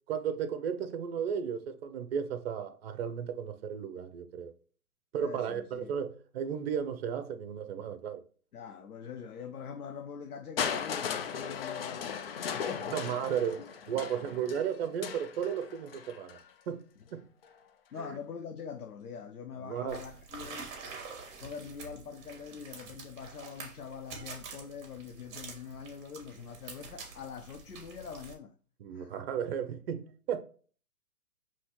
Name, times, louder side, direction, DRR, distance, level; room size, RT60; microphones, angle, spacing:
voice 1, 0.1-4.5 5.1-8.2 12.9-16.4 16.7-16.8 17.1-17.2 17.9-18.2 19.6-20.0 28.8-30.4, right 8 dB, 45° right, 0.7 m, -34 dB
voice 2, 5.2-6.0 8.5-12.9 17.9-20.7 21.4-28.5 28.9-29.1, left 6 dB, 85° left, 0.6 m, -44 dB
Crushing, 10.6-16.5 17.4-17.5, left 7 dB, 45° left, 0.4 m, -37 dB
sound 1, 19.9-28.3, right 5 dB, 25° right, 1.1 m, -47 dB
5.5 x 3.0 x 2.8 m
figure-of-eight pair, 120°, 44 cm